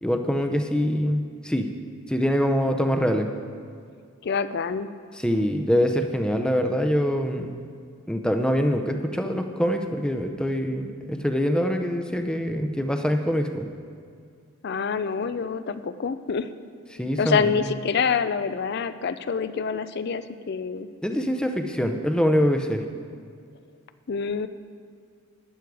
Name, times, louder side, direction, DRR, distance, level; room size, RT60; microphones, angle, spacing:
voice 1, 0.0-1.7 2.1-3.3 5.1-7.5 8.1-13.7 16.9-17.7 21.0-22.8, equal, 5° left, 5 dB, 0.6 m, -24 dB
voice 2, 4.2-4.9 14.6-16.5 17.2-20.9 24.1-24.5, left 5 dB, 50° left, 13 dB, 0.4 m, -26 dB
11.5 x 9.4 x 4.7 m, 2.2 s
head